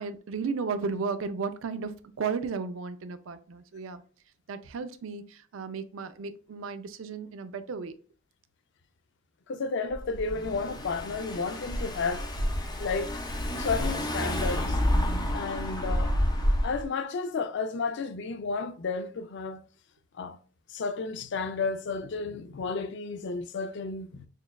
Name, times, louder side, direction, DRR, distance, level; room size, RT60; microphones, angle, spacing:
voice 1, 0.0-1.9 2.2-4.0 4.5-8.0, right 5 dB, 75° right, 0.4 m, -34 dB
voice 2, 9.5-12.3 12.8-13.2 13.6-14.8 15.3-16.2 16.6-19.6 20.2-20.4 20.7-24.3, left 4 dB, 60° left, 0.4 m, -32 dB
Car / Engine, 9.9-16.8, equal, 20° left, 0.6 m, -29 dB
6.3 x 2.3 x 2.2 m
head